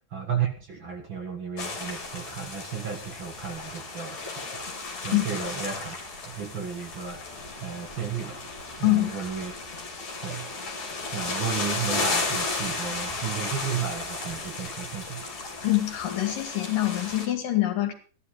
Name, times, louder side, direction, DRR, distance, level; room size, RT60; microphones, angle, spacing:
voice 1, 0.1-6.0 6.2-7.2 7.6-8.5 8.8-9.5 10.2-10.7 11.1-15.2, right 7 dB, 45° right, 3 dB, 1.9 m, -33 dB
sound 1, 1.6-17.3, left 3 dB, 55° left, 5.1 m, -34 dB
voice 2, 8.8-9.2 15.6-17.9, left 16 dB, 80° left, 5 dB, 3.9 m, -25 dB
15.0 x 11.5 x 4.9 m, 0.38 s
omnidirectional pair, 3.9 m